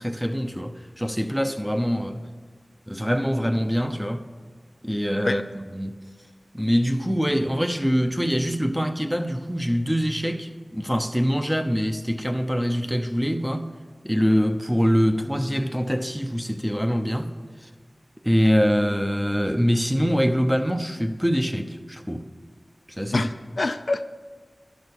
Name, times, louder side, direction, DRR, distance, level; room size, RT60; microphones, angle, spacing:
voice 1, 0.0-2.2 2.9-4.2 4.8-6.0 6.5-13.7 14.0-17.3 18.2-22.3 23.0-23.3, equal, 5° right, 0.7 m, -24 dB
voice 2, 23.1-24.1, left 2 dB, 70° left, 0.4 m, -26 dB
12.0 x 6.3 x 7.1 m
wide cardioid pair, 60°, 0 cm